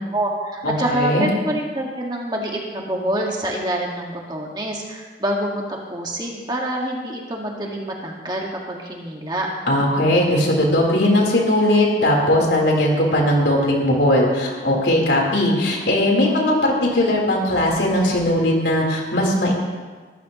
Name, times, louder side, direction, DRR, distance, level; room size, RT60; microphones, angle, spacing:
voice 1, 0.1-9.5, right 1 dB, 25° right, -1 dB, 1.8 m, -26 dB
voice 2, 0.6-1.3 9.7-19.5, left 1 dB, 75° left, -2 dB, 3.9 m, -19 dB
21.5 x 14.0 x 3.1 m, 1.4 s
head